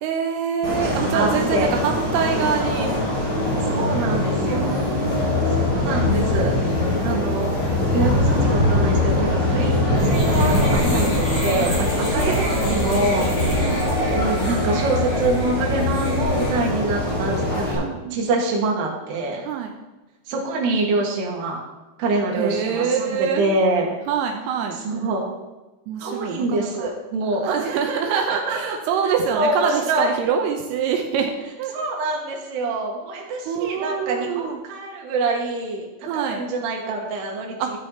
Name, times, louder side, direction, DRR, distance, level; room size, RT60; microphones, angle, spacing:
voice 1, 0.0-2.9 4.4-6.1 9.5-9.7 12.1-13.0 13.6-13.8 17.8-18.3 19.4-19.7 22.4-23.5 24.1-24.8 25.9-26.9 27.4-31.3 31.6-31.8 33.5-34.6 36.0-36.4 37.6-37.7, right 7 dB, 85° right, 4 dB, 2.3 m, -25 dB
sound 1, 0.6-17.8, left 1 dB, 75° left, 6.5 m, -22 dB
voice 2, 1.1-1.7 3.7-4.8 5.5-7.5 7.9-13.3 14.1-17.8 18.1-19.4 20.3-21.6 22.0-23.9 24.8-25.2 26.0-28.8 29.3-30.1 31.7-37.6, right 2 dB, 65° right, -1 dB, 3.5 m, -25 dB
sound 2, 10.0-16.6, equal, 40° left, 3.9 m, -30 dB
13.5 x 6.4 x 4.4 m, 1.1 s
omnidirectional pair, 5.5 m